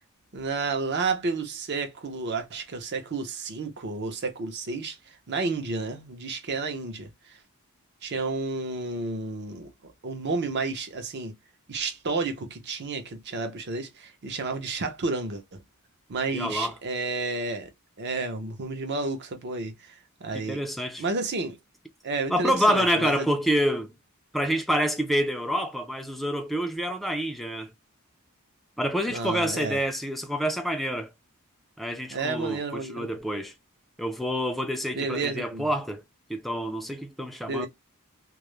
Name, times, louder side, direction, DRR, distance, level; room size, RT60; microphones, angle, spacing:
voice 1, 0.3-7.4 8.0-9.7 10.0-11.3 11.7-15.6 16.1-17.7 18.0-19.9 20.2-20.6 21.0-21.6 22.0-23.3 29.1-29.9 32.1-33.1 34.9-35.7 37.4-37.7, right 3 dB, 50° right, 0.7 m, -31 dB
voice 2, 16.3-16.7 20.3-21.0 22.3-23.9 24.3-27.7 28.8-31.1 31.8-33.5 34.0-36.0 36.3-37.7, equal, ahead, 0.3 m, -27 dB
2.3 x 2.0 x 3.0 m
head